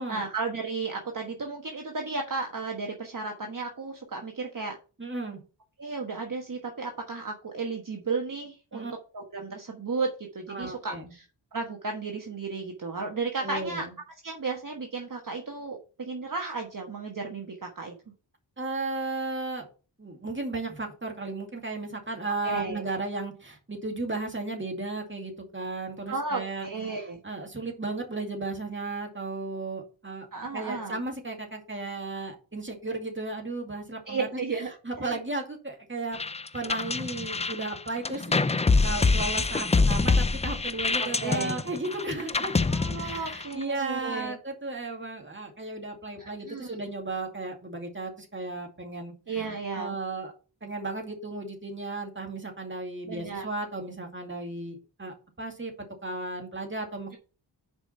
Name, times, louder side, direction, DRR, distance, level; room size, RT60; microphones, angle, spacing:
voice 1, 0.1-4.8 5.8-8.9 9.1-11.2 11.5-13.9 14.2-17.9 22.4-22.8 26.1-27.2 30.3-31.0 34.1-34.7 35.0-35.1 38.3-38.6 41.0-41.5 42.7-44.4 46.2-46.8 49.3-49.9 53.1-53.4, right 4 dB, 45° right, 2 dB, 1.3 m, -34 dB
voice 2, 5.0-5.4 8.7-8.9 10.5-11.1 13.4-14.0 18.6-19.7 20.0-27.0 27.2-30.3 30.5-34.3 34.8-36.2 36.5-42.5 43.0-50.3 50.6-55.7 56.0-57.2, right 2 dB, 25° right, 2 dB, 2.2 m, -35 dB
sound 1, 36.1-43.6, left 3 dB, 15° left, 0.3 m, -25 dB
6.1 x 5.1 x 5.7 m, 0.35 s
wide cardioid pair, 75°, 46 cm